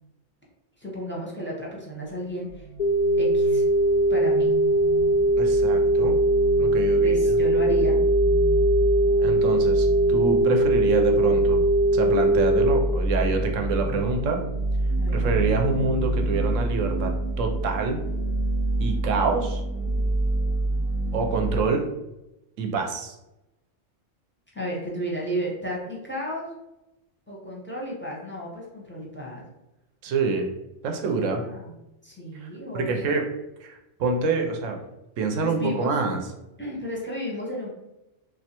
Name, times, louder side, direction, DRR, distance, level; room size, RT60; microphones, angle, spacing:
voice 1, 0.8-2.6 3.1-3.6 4.1-4.5 7.0-8.0 15.0-15.2 24.5-26.5 27.3-29.4 31.1-31.7 32.0-33.2 35.4-36.0 36.6-37.7, equal, 15° left, -3 dB, 0.5 m, -33 dB
sound 1, 2.1-21.6, right 1 dB, 35° right, 0.6 m, -28 dB
sound 2, 2.8-12.8, right 1 dB, 75° left, 0.3 m, -20 dB
voice 2, 5.4-6.2 6.6-7.4 9.2-11.6 11.9-14.4 15.1-17.1 17.4-18.0 18.8-19.6 21.1-21.9 22.6-23.2 30.0-30.5 30.8-31.4 32.3-32.5 32.7-33.2 33.6-34.8 35.2-36.2, right 4 dB, 90° right, 4 dB, 0.9 m, -26 dB
3.3 x 2.7 x 2.8 m, 0.93 s
omnidirectional pair, 1.3 m